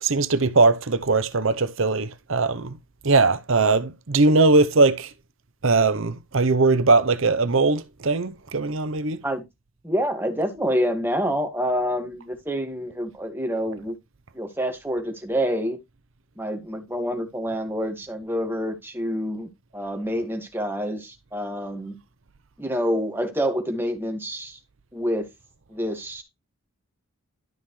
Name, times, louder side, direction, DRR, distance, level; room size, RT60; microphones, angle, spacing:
voice 1, 0.0-2.7 3.0-5.1 5.6-9.2, right 3 dB, 65° right, 0.8 m, -20 dB
voice 2, 9.8-13.9 14.3-15.8 16.4-21.9 22.6-24.6 24.9-25.3 25.7-26.2, equal, 10° right, 1.8 m, -27 dB
12.0 x 5.5 x 3.2 m
head